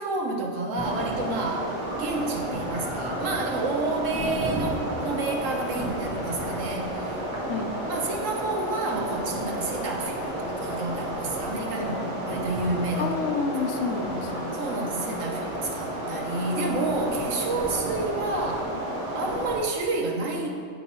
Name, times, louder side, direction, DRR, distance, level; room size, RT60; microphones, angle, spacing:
voice 1, 0.0-7.2 7.9-13.2 13.7-13.9 14.5-18.7 19.1-20.5, right 2 dB, 75° right, 1 dB, 1.1 m, -30 dB
sound 1, 0.7-19.6, right 1 dB, 30° right, 1.1 m, -31 dB
voice 2, 13.0-14.6 14.8-15.4, left 5 dB, 75° left, 3 dB, 0.9 m, -30 dB
7.5 x 3.0 x 4.2 m, 2.2 s
omnidirectional pair, 1.4 m